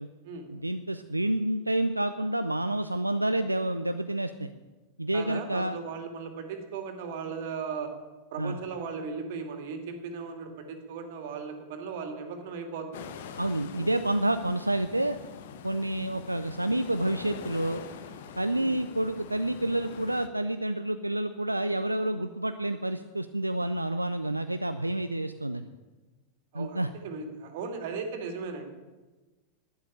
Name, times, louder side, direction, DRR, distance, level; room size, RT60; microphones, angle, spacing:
voice 1, 0.5-4.5 5.0-5.8 8.4-8.6 13.4-15.2 15.6-17.8 18.4-25.7 26.5-26.9, right 1 dB, 85° right, 9 dB, 0.5 m, -29 dB
voice 2, 5.1-7.9 8.3-13.1 18.6-18.8 26.5-28.7, right 5 dB, 50° right, 5 dB, 2.5 m, -37 dB
sound 1, 12.9-20.3, left 7 dB, 55° left, 1.2 m, -44 dB
12.0 x 10.5 x 8.6 m, 1.2 s
figure-of-eight pair, 90°, 0 cm